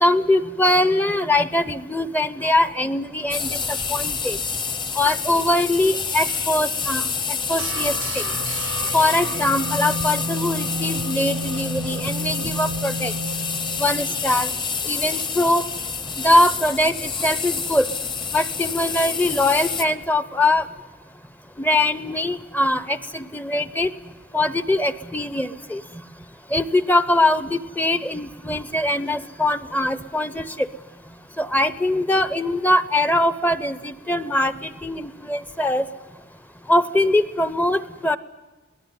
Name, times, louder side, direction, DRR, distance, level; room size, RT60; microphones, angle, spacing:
voice 1, 0.0-4.4 5.0-7.0 7.5-8.2 8.9-13.1 13.8-14.5 14.8-15.6 16.2-17.9 18.3-20.7 21.6-23.9 24.3-25.8 26.5-30.7 31.4-35.8 36.7-38.2, left 1 dB, 10° left, 14 dB, 0.8 m, -22 dB
sound 1, 3.3-19.8, left 5 dB, 25° left, 1.2 m, -28 dB
sound 2, 7.6-14.5, right 1 dB, 85° right, 0.9 m, -31 dB
22.0 x 18.5 x 9.4 m, 1.2 s
head